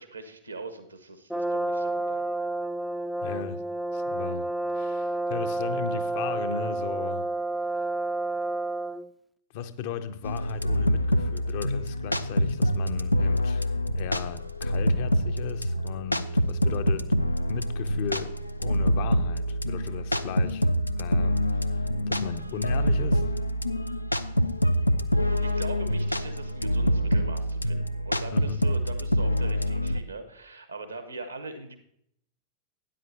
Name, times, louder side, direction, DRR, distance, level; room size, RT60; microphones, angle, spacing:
voice 1, 0.0-2.2 25.2-31.8, right 3 dB, 80° right, 1.0 m, -41 dB
Brass instrument, 1.3-9.1, right 2 dB, ahead, 0.4 m, -30 dB
voice 2, 3.2-3.6 3.9-7.3 9.5-17.1 17.5-20.7 21.0-23.4 28.3-28.6, left 8 dB, 50° left, 0.7 m, -36 dB
sound 1, 10.2-30.0, equal, 85° left, 0.4 m, -26 dB
12.5 x 9.6 x 2.7 m
figure-of-eight pair, 90°, 0 cm